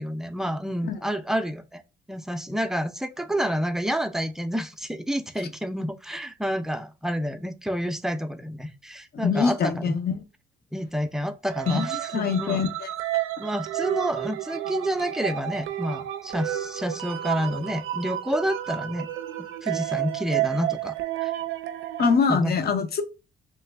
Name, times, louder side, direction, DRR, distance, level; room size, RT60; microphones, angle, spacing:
voice 1, 0.0-1.8 2.1-9.9 10.7-12.6 13.4-19.1 19.6-21.0 21.2-21.3 22.3-22.5, equal, ahead, 0.4 m, -29 dB
voice 2, 9.2-10.2 11.7-11.9 12.1-12.9 22.0-23.0, left 5 dB, 55° left, 0.7 m, -24 dB
sound 1, 11.5-22.2, right 14 dB, 85° right, 0.4 m, -31 dB
3.2 x 2.1 x 3.3 m
cardioid pair, 90°, 20 cm